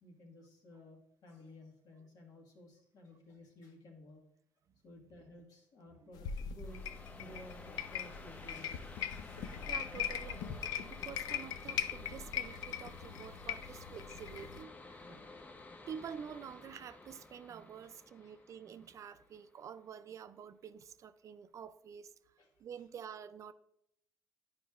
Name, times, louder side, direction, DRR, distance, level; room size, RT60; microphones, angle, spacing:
voice 1, 0.0-4.2 4.8-6.8 7.2-9.0 13.6-13.9 15.0-15.2 17.9-18.3 22.4-22.5, left 1 dB, 65° left, 1.5 m, -55 dB
sound 1, 6.1-14.6, left 9 dB, 85° left, 0.4 m, -40 dB
sound 2, 6.6-20.0, left 2 dB, 25° left, 0.6 m, -53 dB
voice 2, 9.4-15.1 15.9-22.1 22.6-23.5, right 8 dB, 50° right, 0.3 m, -48 dB
9.9 x 5.1 x 2.4 m
cardioid pair, 105°, 7 cm